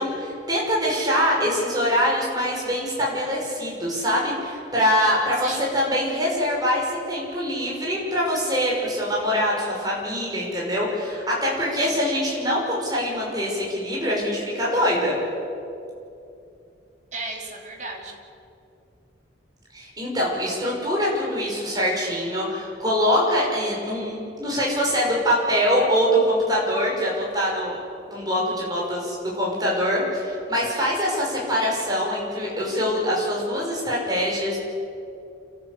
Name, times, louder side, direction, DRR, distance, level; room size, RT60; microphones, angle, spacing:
voice 1, 0.0-15.2 19.7-27.8 28.1-34.6, equal, 20° right, -3 dB, 5.8 m, -24 dB
voice 2, 11.8-12.1 17.1-18.2, right 2 dB, 40° right, 0 dB, 3.5 m, -35 dB
28.5 x 13.5 x 8.4 m, 2.7 s
head